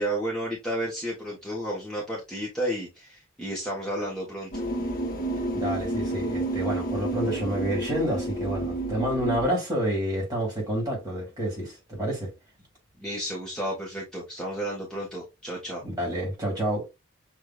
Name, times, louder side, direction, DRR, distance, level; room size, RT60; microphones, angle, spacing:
voice 1, 0.0-4.5 13.0-15.8, right 1 dB, 5° left, 1.2 m, -32 dB
sound 1, 4.5-9.5, right 2 dB, 45° left, 1.1 m, -30 dB
voice 2, 5.5-12.3 15.8-16.9, right 1 dB, 20° right, 2.3 m, -29 dB
6.7 x 2.7 x 2.4 m
head